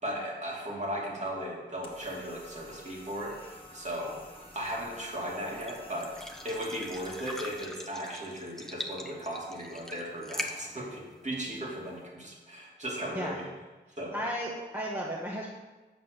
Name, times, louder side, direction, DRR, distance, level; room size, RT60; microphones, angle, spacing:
voice 1, 0.0-13.5 14.0-14.2, equal, 40° right, -3 dB, 2.5 m, -37 dB
sound 1, 1.8-7.6, left 1 dB, 30° left, 1.8 m, -51 dB
sound 2, 3.5-12.0, left 1 dB, ahead, 0.9 m, -44 dB
voice 2, 13.9-15.5, equal, 15° right, -5 dB, 1.4 m, -34 dB
7.4 x 5.2 x 6.7 m, 1.2 s
cardioid pair, 55°, 19 cm